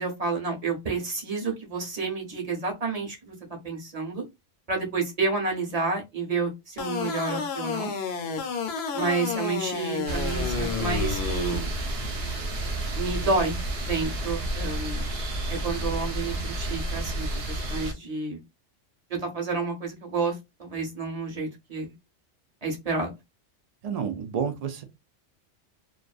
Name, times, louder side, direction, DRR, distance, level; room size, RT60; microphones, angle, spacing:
voice 1, 0.0-3.3 3.6-4.2 4.7-7.9 8.9-11.7 12.9-13.6 13.8-15.0 15.5-18.4 19.1-21.9 22.6-23.1, right 4 dB, 35° right, 0.8 m, -30 dB
sound 1, 6.8-11.6, left 5 dB, 65° left, 0.8 m, -31 dB
sound 2, 10.1-17.9, right 1 dB, 60° right, 0.9 m, -30 dB
voice 2, 23.8-24.8, right 7 dB, 75° right, 0.3 m, -30 dB
2.5 x 2.3 x 2.3 m
omnidirectional pair, 1.2 m